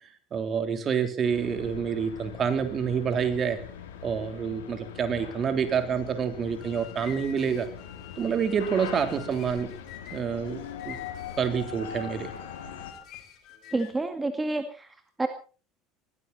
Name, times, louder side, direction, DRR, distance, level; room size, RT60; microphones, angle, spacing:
voice 1, 0.3-3.6 4.0-7.7 8.2-9.7 10.1-10.6 10.9-11.0 11.4-12.3, right 7 dB, 40° right, 8 dB, 3.5 m, -27 dB
sound 1, 1.2-12.9, left 8 dB, 85° left, 3.2 m, -41 dB
sound 2, 6.4-14.1, left 11 dB, 55° left, 3.6 m, -48 dB
voice 2, 13.7-15.3, right 2 dB, 15° right, 7 dB, 2.1 m, -29 dB
20.5 x 15.5 x 4.2 m, 0.38 s
hypercardioid pair, 75°, 0 cm